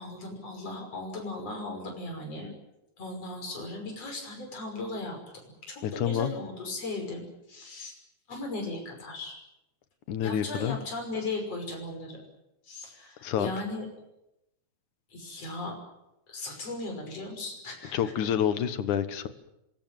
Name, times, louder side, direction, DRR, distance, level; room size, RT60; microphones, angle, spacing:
voice 1, 0.0-2.6 3.0-5.2 5.5-7.2 7.5-8.0 8.3-9.4 10.2-12.2 12.6-13.9 15.1-15.7 16.3-18.1, left 2 dB, 55° left, 2 dB, 7.0 m, -37 dB
voice 2, 5.8-6.3 10.1-10.8 13.2-13.5 17.9-19.3, left 9 dB, 85° left, 12 dB, 2.9 m, -28 dB
26.5 x 21.5 x 7.7 m, 0.88 s
omnidirectional pair, 3.4 m